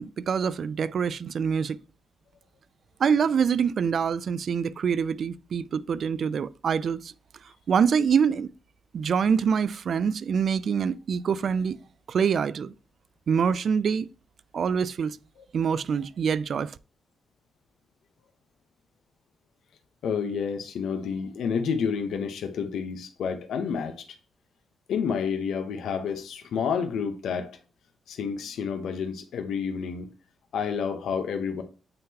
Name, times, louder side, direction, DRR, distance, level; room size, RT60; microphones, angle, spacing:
voice 1, 0.0-1.8 3.0-7.1 7.7-8.5 8.9-11.8 12.1-12.7 13.3-14.1 14.5-15.2 15.5-16.7, right 6 dB, 50° right, 0.3 m, -25 dB
voice 2, 20.0-23.9 24.9-27.5 28.1-30.1 30.5-31.6, left 6 dB, 80° left, 0.8 m, -29 dB
8.7 x 3.7 x 2.8 m
wide cardioid pair, 145°, 0 cm